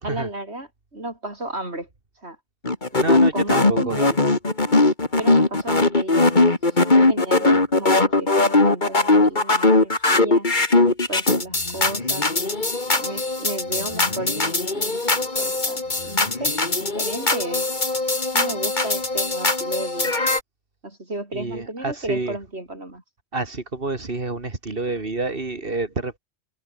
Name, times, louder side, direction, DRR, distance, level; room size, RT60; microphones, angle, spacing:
voice 1, 0.0-1.9 2.2-2.4 2.9-4.2 5.2-6.4 6.7-10.5 11.1-12.4 12.9-16.5 16.9-17.8 18.3-20.1 20.8-23.0, right 1 dB, 75° right, 6.0 m, -33 dB
sound 1, 2.6-20.4, left 2 dB, 45° left, 2.8 m, -20 dB
voice 2, 3.0-4.0 21.3-22.4 23.3-26.2, right 3 dB, 55° right, 3.0 m, -28 dB
omnidirectional pair, 1.1 m